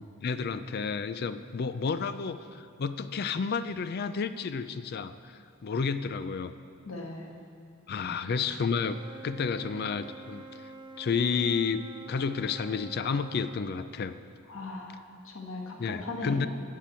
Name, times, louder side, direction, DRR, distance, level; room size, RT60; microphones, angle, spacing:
voice 1, 0.0-6.5 7.9-10.7 11.0-11.8 12.1-14.1 15.8-16.5, left 5 dB, 50° left, 12 dB, 0.4 m, -31 dB
voice 2, 6.9-7.3 8.0-8.2 14.5-16.5, left 2 dB, 70° left, 1 dB, 1.4 m, -38 dB
Wind instrument woodwind instrument, 8.7-13.6, right 2 dB, 20° right, 0.7 m, -47 dB
15.0 x 7.6 x 4.4 m, 2.6 s
head